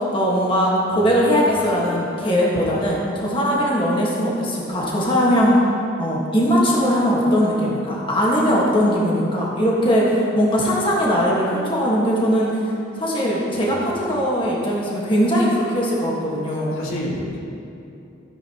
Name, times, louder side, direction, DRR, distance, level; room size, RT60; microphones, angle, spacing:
voice 1, 0.1-5.6 6.0-12.5 13.0-16.7, equal, 25° left, -5 dB, 1.5 m, -20 dB
voice 2, 0.9-1.5 13.6-14.2 16.7-17.4, equal, 85° left, -3 dB, 1.7 m, -32 dB
14.0 x 9.2 x 2.9 m, 2.7 s
head